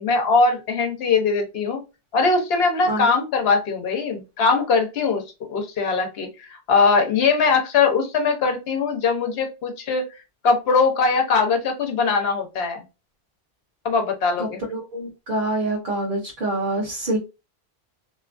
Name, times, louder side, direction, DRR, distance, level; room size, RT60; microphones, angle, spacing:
voice 1, 0.0-1.8 2.1-5.2 5.5-6.3 6.7-10.1 10.4-12.8 13.8-14.6, left 4 dB, 70° left, 1.0 m, -21 dB
voice 2, 14.4-17.2, right 1 dB, 50° right, 0.9 m, -26 dB
2.8 x 2.3 x 2.4 m
omnidirectional pair, 1.1 m